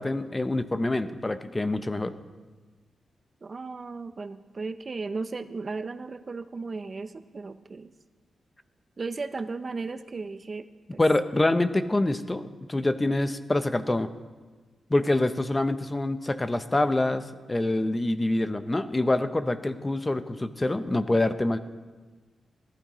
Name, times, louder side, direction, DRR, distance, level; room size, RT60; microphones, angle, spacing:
voice 1, 0.0-2.1 11.0-14.1 14.9-21.6, left 2 dB, 20° left, 11 dB, 0.6 m, -26 dB
voice 2, 3.4-7.9 9.0-11.0, right 4 dB, 45° right, 11 dB, 0.5 m, -35 dB
14.5 x 12.5 x 3.0 m, 1.4 s
cardioid pair, 75°, 0 cm